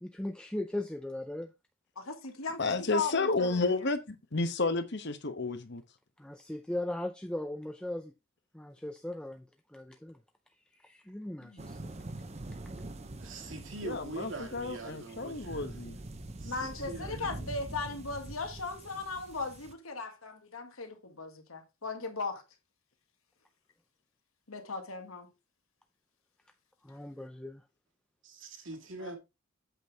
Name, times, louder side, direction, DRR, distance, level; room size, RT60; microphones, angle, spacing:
voice 1, 0.0-1.5 6.2-8.1 8.5-10.2 10.7-11.9 26.8-27.6, left 1 dB, 5° left, 0.4 m, -38 dB
voice 2, 2.0-3.6 11.4-11.6 16.4-22.4 24.5-25.3 29.0-29.2, left 4 dB, 85° left, 1.9 m, -37 dB
voice 3, 2.6-5.8 13.8-16.0, left 3 dB, 55° left, 1.0 m, -31 dB
sound 1, 11.6-19.7, right 2 dB, 30° right, 0.8 m, -44 dB
voice 4, 13.2-15.8 16.4-17.5 28.2-29.2, right 2 dB, 65° right, 2.4 m, -43 dB
8.1 x 6.2 x 3.5 m
head